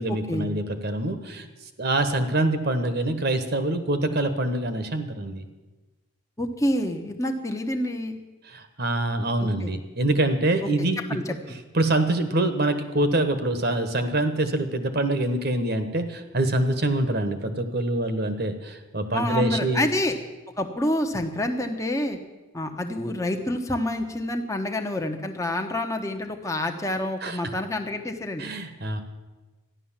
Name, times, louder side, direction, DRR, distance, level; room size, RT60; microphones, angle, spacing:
voice 1, 0.0-1.5 1.8-5.4 8.5-11.0 11.7-19.9 27.2-27.4 28.4-29.0, right 1 dB, 45° right, 9 dB, 1.3 m, -25 dB
voice 2, 6.4-8.2 9.6-9.7 10.6-11.3 19.1-20.2 20.6-22.2 22.5-28.5, left 1 dB, 15° left, 4 dB, 1.1 m, -28 dB
13.5 x 11.0 x 7.3 m, 1.2 s
head